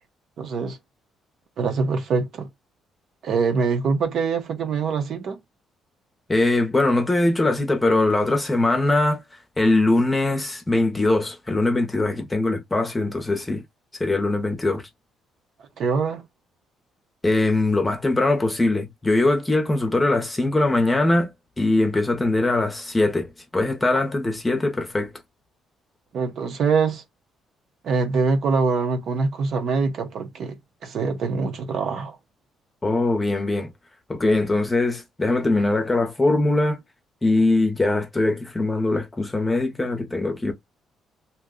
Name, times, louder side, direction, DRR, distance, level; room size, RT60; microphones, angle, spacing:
voice 1, 0.4-0.8 1.6-2.5 3.2-5.4 15.8-16.3 26.1-27.0 27.8-32.2, right 4 dB, 55° right, 0.7 m, -24 dB
voice 2, 6.3-9.2 9.6-13.6 14.0-14.8 17.2-21.3 21.6-25.1 32.8-33.7 34.1-36.8 37.2-40.5, left 2 dB, 15° left, 0.7 m, -21 dB
2.7 x 2.2 x 3.6 m
cardioid pair, 150°, 0 cm